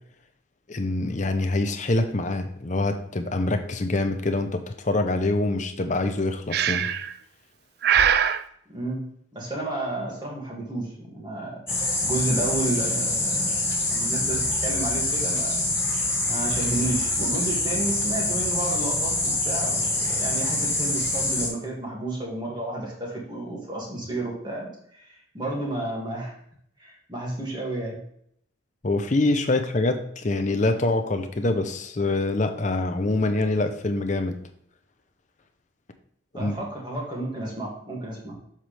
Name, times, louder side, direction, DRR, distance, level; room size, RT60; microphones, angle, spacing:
voice 1, 0.7-6.9 28.8-34.4 36.3-36.6, left 2 dB, 35° left, 7 dB, 0.7 m, -25 dB
Breathing, 6.5-7.1 7.8-8.4, right 8 dB, 50° right, 0.3 m, -21 dB
voice 2, 8.7-9.0 9.3-11.6 12.0-15.6 16.3-26.3 26.8-28.0 36.3-38.4, right 2 dB, 20° right, -3 dB, 2.2 m, -31 dB
sound 1, 11.7-21.5, left 2 dB, 10° left, 1.4 m, -25 dB
7.7 x 5.9 x 3.4 m, 0.68 s
head